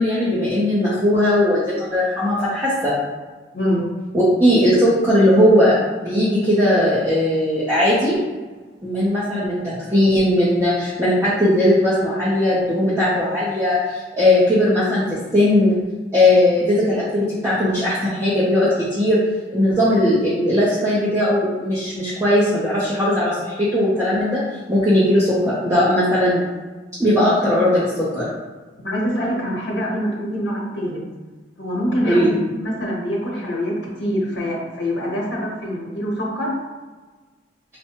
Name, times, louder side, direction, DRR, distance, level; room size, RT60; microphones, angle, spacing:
voice 1, 0.0-2.9 4.1-5.7 6.0-8.2 8.8-15.7 16.1-19.2 19.5-24.4 24.7-26.4 27.0-28.3 32.0-32.3, left 1 dB, 15° right, -10 dB, 0.7 m, -18 dB
voice 2, 28.8-31.0 31.6-36.5, equal, 70° left, -3 dB, 1.2 m, -24 dB
5.8 x 2.2 x 2.9 m, 1.3 s
head